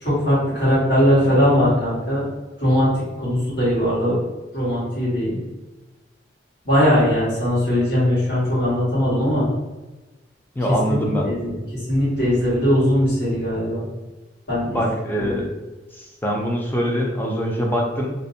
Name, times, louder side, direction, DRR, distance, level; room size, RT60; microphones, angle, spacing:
voice 1, 0.0-2.2 2.6-4.2 4.5-5.4 6.6-9.5 10.6-13.9 14.5-14.8 15.2-15.5, equal, 65° left, -9 dB, 1.4 m, -20 dB
voice 2, 10.6-11.3 14.7-15.5 16.0-18.1, equal, 10° left, -1 dB, 0.3 m, -23 dB
2.5 x 2.0 x 2.7 m, 1.1 s
head